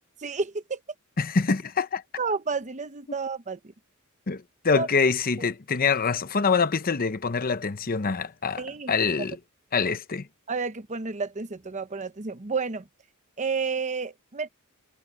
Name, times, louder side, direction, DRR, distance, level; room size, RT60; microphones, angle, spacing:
voice 1, 0.2-0.8 2.2-3.6 4.7-4.9 5.4-5.5 8.6-8.9 10.5-12.8 13.4-14.5, right 4 dB, 35° right, 0.9 m, -30 dB
voice 2, 1.2-2.0 4.3-9.4 9.7-10.3, left 5 dB, 40° left, 0.8 m, -25 dB
head